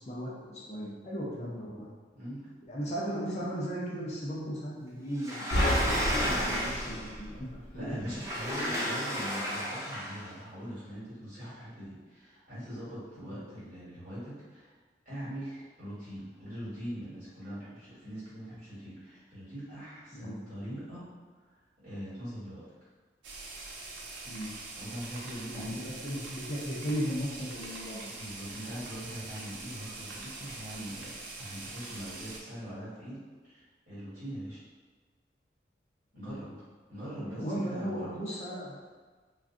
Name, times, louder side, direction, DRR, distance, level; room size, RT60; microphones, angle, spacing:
voice 1, 0.0-1.9 2.7-7.5 7.7-8.0 8.8-8.9 13.2-13.4 20.1-20.4 24.3-24.5 25.5-28.1 36.2-36.4 37.1-38.8, equal, 35° left, -5 dB, 0.5 m, -36 dB
voice 2, 2.1-2.5 7.7-14.7 15.0-21.1 21.8-22.6 24.8-25.8 28.1-34.6 36.1-36.5 36.9-38.1, equal, 45° right, -13 dB, 1.5 m, -42 dB
Sliding door, 5.2-7.1 8.1-10.2, equal, 15° right, 0.5 m, -33 dB
sound 1, 5.5-7.9, equal, 60° left, 0.8 m, -30 dB
sound 2, 23.2-32.4, right 3 dB, 90° right, 0.5 m, -43 dB
2.5 x 2.4 x 3.6 m, 1.4 s
head